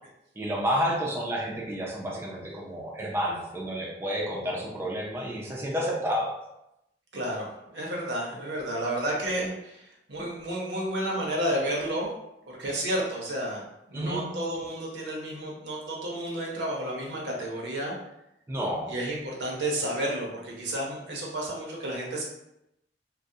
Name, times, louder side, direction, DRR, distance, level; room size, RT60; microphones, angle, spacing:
voice 1, 0.4-6.3 13.9-14.3 18.5-18.9, equal, 15° right, -4 dB, 0.3 m, -30 dB
voice 2, 7.1-12.1 12.5-17.9 18.8-22.2, right 1 dB, 80° right, -2 dB, 0.7 m, -31 dB
2.3 x 2.0 x 2.6 m, 0.86 s
head